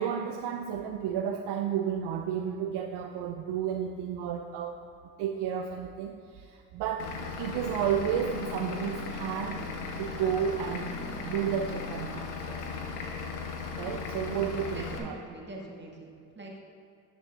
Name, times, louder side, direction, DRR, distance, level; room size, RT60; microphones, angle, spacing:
voice 1, 0.0-4.8 5.2-9.6 10.0-12.6 13.8-15.2, right 8 dB, 60° right, 4 dB, 0.6 m, -32 dB
Vehicle / Engine, 7.0-15.0, left 4 dB, 85° left, 0.9 m, -37 dB
voice 2, 14.7-16.6, right 2 dB, 25° right, -2 dB, 1.7 m, -44 dB
11.0 x 7.4 x 2.4 m, 2.5 s
hypercardioid pair, 55°, 47 cm